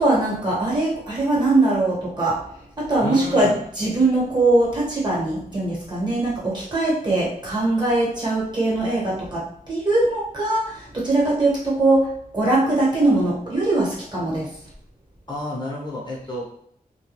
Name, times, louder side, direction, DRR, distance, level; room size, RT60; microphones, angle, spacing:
voice 1, 0.0-2.4 2.8-14.5, right 2 dB, 30° right, -6 dB, 1.2 m, -21 dB
voice 2, 3.0-3.6 15.3-16.6, left 1 dB, 30° left, -5 dB, 0.8 m, -30 dB
2.2 x 2.2 x 2.9 m, 0.65 s
cardioid pair, 65°, 15 cm